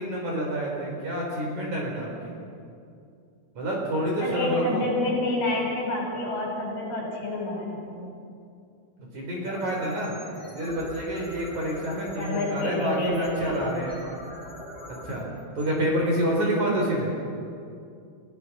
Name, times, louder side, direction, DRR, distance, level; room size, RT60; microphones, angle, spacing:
voice 1, 0.0-2.1 3.5-4.9 9.1-10.2 10.5-14.0 14.9-15.3 15.5-17.1, right 1 dB, 40° right, -2 dB, 4.9 m, -28 dB
voice 2, 4.2-8.1 12.2-13.7, left 2 dB, 65° left, -2 dB, 7.9 m, -28 dB
sound 1, 9.4-16.4, left 1 dB, 10° left, 7.3 m, -43 dB
30.0 x 17.5 x 6.0 m, 2.4 s
omnidirectional pair, 5.6 m